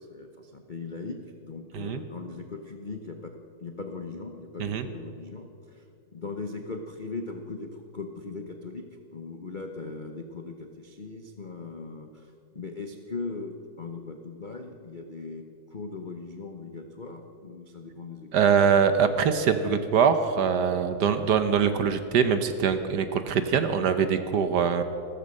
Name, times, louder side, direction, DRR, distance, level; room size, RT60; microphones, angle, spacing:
voice 1, 0.0-3.3 3.6-18.5, left 3 dB, 50° left, 4 dB, 0.5 m, -39 dB
voice 2, 18.3-24.8, right 7 dB, 65° right, 10 dB, 1.3 m, -23 dB
15.5 x 13.5 x 6.5 m, 2.7 s
omnidirectional pair, 2.2 m